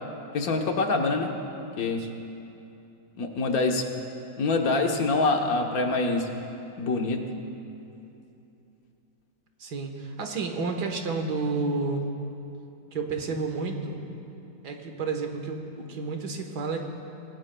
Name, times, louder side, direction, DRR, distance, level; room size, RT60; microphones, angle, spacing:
voice 1, 0.3-1.3 1.8-2.0 3.2-3.8 4.4-6.3 6.8-7.2, left 3 dB, 65° left, 3 dB, 1.5 m, -25 dB
voice 2, 9.6-12.0 12.9-14.0 14.6-16.8, right 4 dB, 85° right, 4 dB, 1.8 m, -30 dB
24.0 x 18.0 x 2.3 m, 2.8 s
omnidirectional pair, 1.7 m